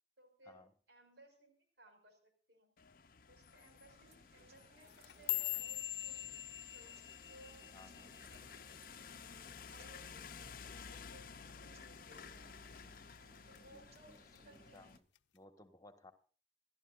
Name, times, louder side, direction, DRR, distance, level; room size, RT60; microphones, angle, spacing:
voice 1, 0.2-0.6 0.9-2.7 3.3-6.2 6.6-7.7 8.1-8.8 9.7-10.5 10.9-14.9, right 1 dB, 85° right, 5 dB, 5.8 m, -63 dB
sound 1, 2.8-15.0, left 6 dB, 55° left, 0.7 m, -54 dB
sound 2, 3.9-15.0, right 1 dB, 35° right, 1.8 m, -67 dB
sound 3, 4.8-9.3 9.5-10.0 10.3-10.8 11.1-11.4 11.9-12.4 12.7-13.6 13.9-14.4 15.2-15.3, left 16 dB, 90° left, 0.7 m, -42 dB
voice 2, 7.7-8.2 13.5-15.0 15.3-16.1, left 2 dB, 20° left, 8 dB, 1.7 m, -61 dB
27.0 x 13.0 x 2.6 m, 0.40 s
head